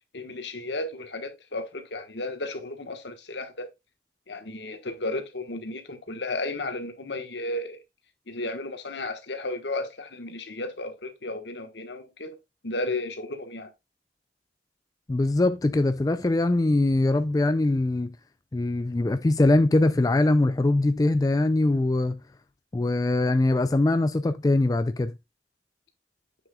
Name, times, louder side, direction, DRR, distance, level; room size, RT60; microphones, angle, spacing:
voice 1, 0.1-3.7 4.3-7.8 8.3-12.4 12.6-13.7, left 2 dB, 80° left, 1.4 m, -33 dB
voice 2, 15.1-18.1 18.5-22.2 22.7-25.1, left 2 dB, 20° left, 0.3 m, -22 dB
7.5 x 6.3 x 2.3 m
head